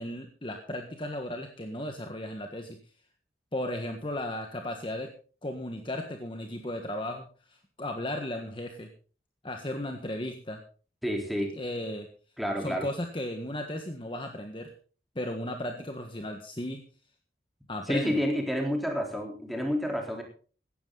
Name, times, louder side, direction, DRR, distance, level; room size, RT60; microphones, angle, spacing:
voice 1, 0.0-2.8 3.5-5.1 5.4-7.3 7.8-8.9 9.4-10.6 11.5-12.1 12.6-14.7 15.1-16.8 17.7-18.2, left 1 dB, 30° left, 4 dB, 1.5 m, -35 dB
voice 2, 11.0-11.5 12.4-12.9 17.9-20.2, equal, ahead, 1 dB, 3.7 m, -29 dB
17.0 x 12.5 x 4.0 m, 0.40 s
head